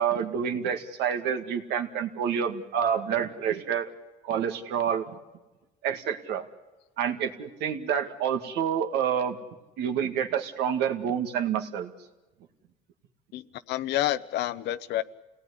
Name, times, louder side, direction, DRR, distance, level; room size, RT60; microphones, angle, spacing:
voice 1, 0.0-3.9 4.2-5.0 5.8-6.4 7.0-9.4 9.8-11.9, right 8 dB, 85° right, 5 dB, 2.1 m, -28 dB
voice 2, 13.3-15.0, left 14 dB, 80° left, 14 dB, 0.9 m, -29 dB
28.5 x 18.0 x 9.9 m, 1.1 s
cardioid pair, 110°, 17 cm